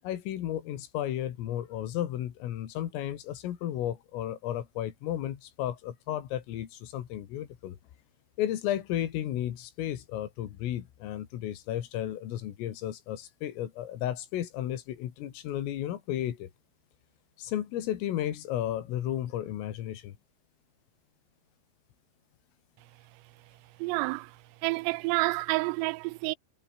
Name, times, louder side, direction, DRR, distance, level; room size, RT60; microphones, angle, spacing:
voice 1, 0.0-7.8 8.4-16.5 17.4-20.2, left 12 dB, 90° left, 4.8 m, -33 dB
voice 2, 23.8-24.3 24.6-26.4, right 26 dB, 90° right, 3.2 m, -29 dB
omnidirectional pair, 5.8 m